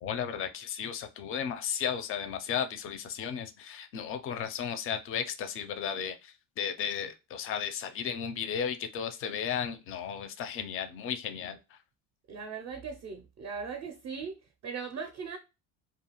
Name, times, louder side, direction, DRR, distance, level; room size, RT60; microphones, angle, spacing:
voice 1, 0.0-11.8, left 8 dB, 30° left, 0.4 m, -34 dB
voice 2, 12.3-15.4, right 5 dB, 35° right, 0.5 m, -39 dB
2.4 x 2.4 x 2.9 m
supercardioid pair, 105°, 45 cm